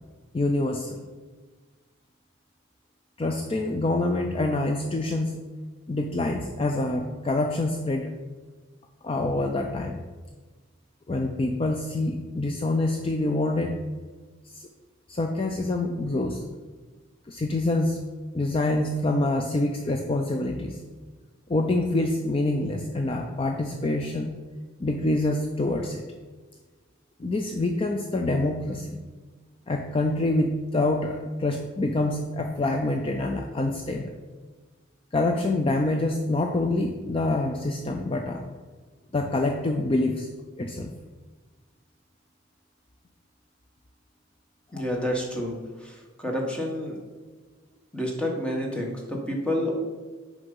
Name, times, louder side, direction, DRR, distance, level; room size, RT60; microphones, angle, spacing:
voice 1, 0.3-1.0 3.2-5.4 5.9-8.1 9.0-10.0 11.1-13.8 14.4-14.7 15.1-16.4 17.3-18.0 18.3-20.8 21.5-24.4 24.8-26.0 27.2-29.0 29.7-34.1 35.1-38.5 39.1-40.3 40.6-40.9, left 2 dB, 30° left, 3 dB, 0.4 m, -26 dB
voice 2, 44.7-45.6 46.2-47.0 47.9-49.7, left 1 dB, 5° left, 0 dB, 1.1 m, -28 dB
6.7 x 5.1 x 5.4 m, 1.4 s
head